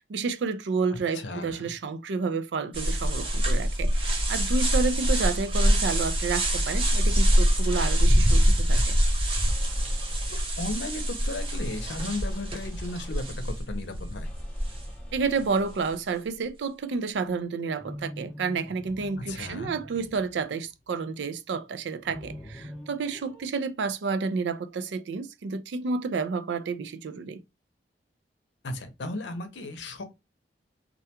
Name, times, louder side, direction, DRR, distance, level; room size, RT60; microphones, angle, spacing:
voice 1, 0.0-9.0 15.1-27.4, right 4 dB, 80° right, 0.4 m, -30 dB
voice 2, 1.1-1.7 10.3-14.3 19.3-19.7 28.6-30.0, left 2 dB, 80° left, 0.7 m, -35 dB
sound 1, 2.7-15.3, equal, 30° right, 0.7 m, -24 dB
sound 2, 6.2-8.5 9.5-10.5 11.4-13.2 14.2-16.1 17.7-20.9 22.0-23.5, equal, 5° left, 0.5 m, -47 dB
2.4 x 2.2 x 2.7 m
head